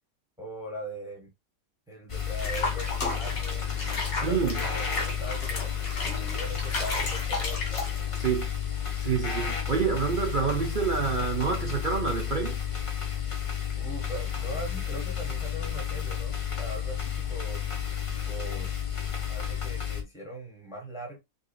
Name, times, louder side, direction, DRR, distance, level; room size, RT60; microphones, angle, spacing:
voice 1, 0.4-1.3 1.9-5.7 6.0-7.6 13.8-17.6 18.1-18.8 19.3-21.2, right 1 dB, ahead, 1.3 m, -40 dB
sound 1, 2.1-20.0, left 8 dB, 30° left, 0.7 m, -32 dB
Water / Bathtub (filling or washing), 2.4-8.3, left 3 dB, 75° left, 2.0 m, -34 dB
voice 2, 4.2-4.6 8.2-8.5 9.0-12.6, right 6 dB, 55° right, 0.6 m, -27 dB
5.3 x 2.5 x 2.3 m
omnidirectional pair, 1.5 m